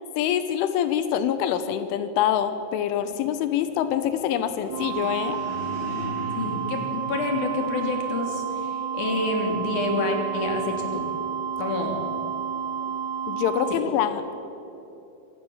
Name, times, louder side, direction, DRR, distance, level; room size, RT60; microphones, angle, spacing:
voice 1, 0.2-5.4 13.3-14.4, left 10 dB, 90° left, 10 dB, 3.5 m, -25 dB
sound 1, 4.4-8.0, left 1 dB, 25° left, 7.0 m, -38 dB
sound 2, 4.7-13.7, right 7 dB, 75° right, 5.6 m, -30 dB
voice 2, 6.4-11.0 11.6-12.0, left 2 dB, 45° left, 2 dB, 4.2 m, -28 dB
26.5 x 18.0 x 7.3 m, 2.9 s
omnidirectional pair, 5.4 m